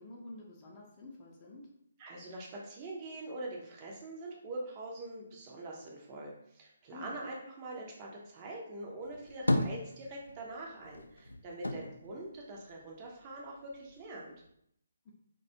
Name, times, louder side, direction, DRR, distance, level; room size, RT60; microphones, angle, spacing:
voice 1, 0.0-1.7 6.9-7.2 15.0-15.1, left 2 dB, 25° left, -3 dB, 0.5 m, -49 dB
voice 2, 2.0-14.3, right 2 dB, 30° right, -2 dB, 0.5 m, -44 dB
sound 1, 9.0-10.5 10.8-13.2 13.6-14.5, left 1 dB, 85° left, 0.3 m, -35 dB
2.3 x 2.2 x 2.6 m, 0.71 s
figure-of-eight pair, 140°, 0 cm